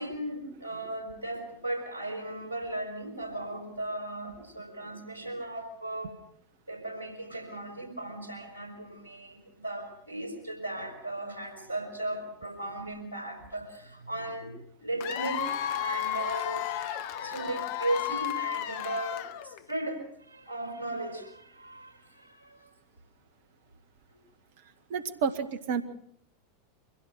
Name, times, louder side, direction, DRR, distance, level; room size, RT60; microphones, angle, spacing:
voice 1, 0.0-6.2 6.7-16.6 17.2-22.7 24.1-24.2, right 1 dB, 85° left, 3 dB, 5.3 m, -37 dB
Cheering / Applause / Crowd, 15.0-19.7, left 11 dB, 50° left, 1.0 m, -33 dB
voice 2, 24.9-25.8, right 6 dB, 55° right, 10 dB, 1.7 m, -30 dB
24.5 x 16.5 x 6.6 m, 0.72 s
figure-of-eight pair, 85°, 0 cm